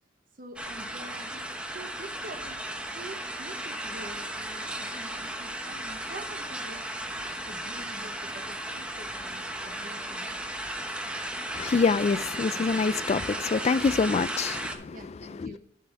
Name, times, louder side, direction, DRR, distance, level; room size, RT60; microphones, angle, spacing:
voice 1, 0.3-6.9 7.5-10.3 14.9-15.6, right 1 dB, 45° right, 0.9 m, -46 dB
sound 1, 0.6-14.8, right 1 dB, 5° right, 0.9 m, -35 dB
voice 2, 11.5-15.0 15.4-15.6, left 4 dB, 35° left, 0.3 m, -26 dB
11.0 x 5.5 x 4.7 m
head